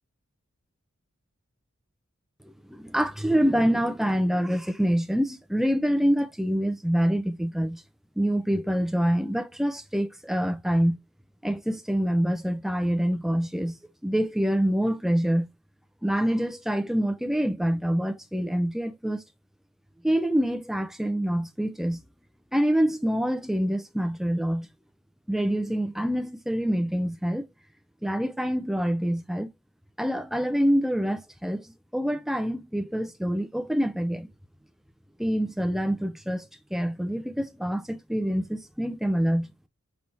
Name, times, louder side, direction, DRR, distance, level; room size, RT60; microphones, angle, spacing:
voice 1, 2.7-7.8 8.2-11.0 11.4-13.8 14.0-15.5 16.0-19.2 20.0-22.0 22.5-24.7 25.3-27.5 28.0-29.5 30.0-34.3 35.2-39.5, equal, ahead, 0.5 m, -26 dB
5.5 x 3.3 x 2.7 m
head